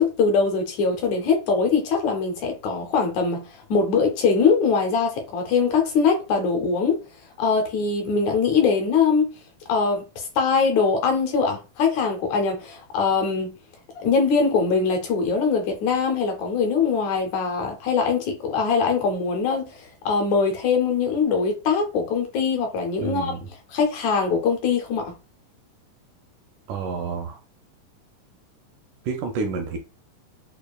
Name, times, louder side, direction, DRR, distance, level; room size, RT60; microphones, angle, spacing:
voice 1, 0.0-7.0 7.4-9.3 9.7-13.5 13.9-23.4 23.7-25.1, left 5 dB, 75° left, 1.7 m, -22 dB
voice 2, 23.0-23.5 26.7-27.4 29.0-29.8, right 5 dB, 80° right, 1.8 m, -29 dB
6.3 x 2.4 x 2.3 m
omnidirectional pair, 4.0 m